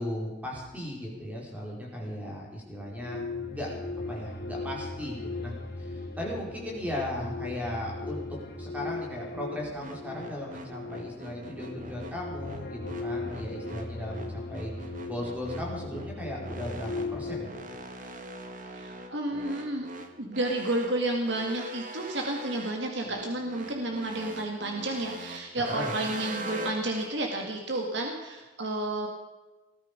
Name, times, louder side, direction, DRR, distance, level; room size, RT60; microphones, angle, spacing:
voice 1, 0.0-3.7 4.1-5.5 5.8-8.2 8.6-17.5 25.5-25.9, left 1 dB, 10° right, -3 dB, 4.9 m, -37 dB
sound 1, 2.8-17.5, left 3 dB, 50° left, 3.3 m, -38 dB
sound 2, 9.8-27.1, right 1 dB, 40° right, 1.8 m, -42 dB
voice 2, 18.7-19.9 20.2-29.1, right 1 dB, 65° right, 2 dB, 2.1 m, -31 dB
20.0 x 14.0 x 5.3 m, 1.2 s
head